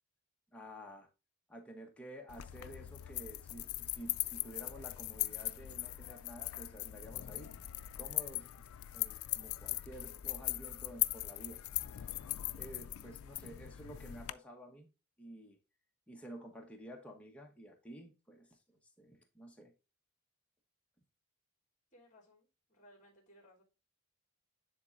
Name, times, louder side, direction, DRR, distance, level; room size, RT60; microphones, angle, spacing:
voice 1, 0.5-1.1 1.5-7.5 8.0-8.5 8.9-11.6 12.5-14.9 15.2-15.6 16.1-19.7, right 1 dB, 5° left, 1.1 m, -51 dB
sound 1, 2.3-14.3, left 16 dB, 70° left, 0.4 m, -40 dB
voice 2, 21.9-23.6, equal, 35° left, 2.9 m, -62 dB
10.5 x 3.7 x 2.5 m
head